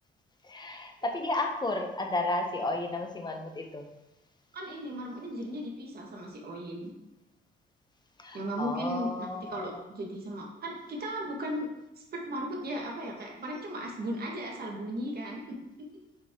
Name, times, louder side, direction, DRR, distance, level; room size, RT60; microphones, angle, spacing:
voice 1, 0.4-3.9 8.2-9.8, left 2 dB, 20° left, 3 dB, 1.1 m, -33 dB
voice 2, 4.5-6.9 8.3-9.1 9.5-11.7 12.1-15.6, equal, 50° right, -1 dB, 1.7 m, -36 dB
7.6 x 4.6 x 3.8 m, 0.94 s
cardioid pair, 90°, 20 cm